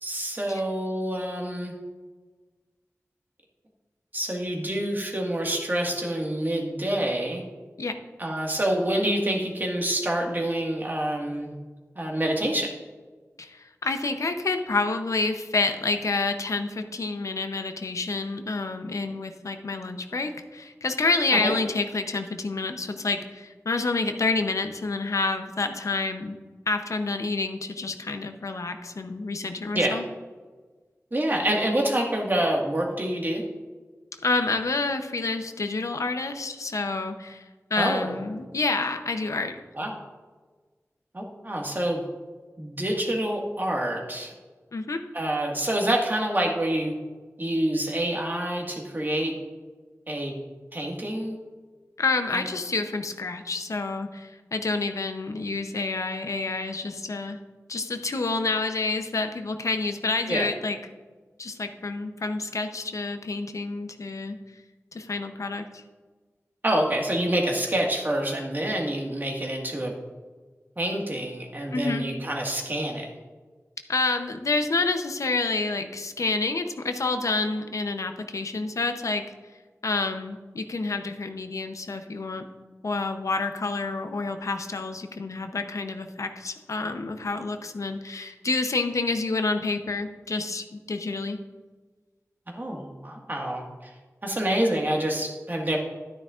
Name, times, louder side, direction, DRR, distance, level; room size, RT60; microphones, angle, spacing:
voice 1, 0.0-1.7 4.1-7.4 8.2-11.5 12.0-12.7 21.4-21.5 29.7-30.0 31.1-33.4 37.8-38.2 39.8-39.9 41.1-42.0 42.6-44.3 45.1-46.9 47.4-49.3 50.1-50.4 50.7-51.4 52.3-52.5 60.3-60.5 66.6-69.9 70.8-73.1 92.5-93.9 94.2-95.8, right 1 dB, 35° right, 0 dB, 1.7 m, -27 dB
voice 2, 13.4-26.4 26.7-30.0 34.2-37.4 37.7-39.5 44.7-45.0 52.0-57.4 57.7-60.8 61.4-64.4 64.9-65.8 71.7-72.1 73.9-79.2 79.8-82.4 82.8-91.4, left 3 dB, 75° left, 7 dB, 0.7 m, -28 dB
11.5 x 9.7 x 2.5 m, 1.4 s
wide cardioid pair, 65°, 5 cm